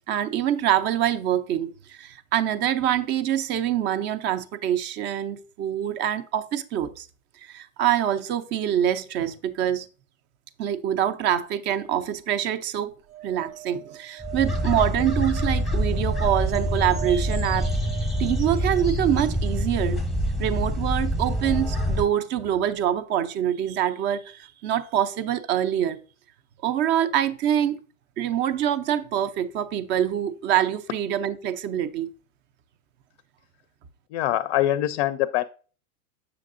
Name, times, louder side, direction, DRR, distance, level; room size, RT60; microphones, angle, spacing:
voice 1, 0.1-7.1 7.4-9.9 10.6-12.9 13.2-17.7 18.2-20.0 20.4-26.0 26.6-27.8 28.2-32.1, right 10 dB, 25° right, 0.4 m, -25 dB
sound 1, 13.1-19.2 21.5-21.6 21.8-21.9, right 13 dB, 70° right, 0.7 m, -39 dB
sound 2, 14.2-22.0, equal, ahead, 0.8 m, -26 dB
voice 2, 34.1-35.4, left 13 dB, 55° left, 0.5 m, -23 dB
7.6 x 6.2 x 2.4 m
hypercardioid pair, 110°, 43 cm